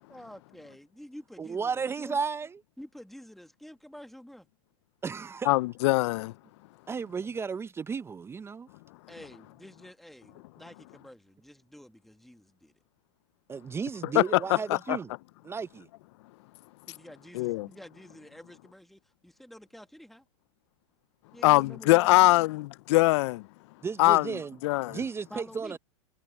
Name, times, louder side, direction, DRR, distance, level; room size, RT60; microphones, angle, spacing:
voice 1, 0.1-2.2 2.8-4.5 9.1-12.7 16.9-20.2 21.3-22.4 25.3-25.8, equal, ahead, 2.0 m, -49 dB
voice 2, 1.4-2.6 5.0-5.5 6.9-8.7 13.5-15.1 15.4-15.9 23.8-24.6 24.9-25.8, right 5 dB, 15° right, 0.6 m, -34 dB
voice 3, 5.5-6.3 14.1-14.2 14.7-15.0 17.3-17.7 21.4-23.4 24.0-24.3 24.6-25.0, left 20 dB, 60° left, 0.5 m, -22 dB
hypercardioid pair, 115°, 16 cm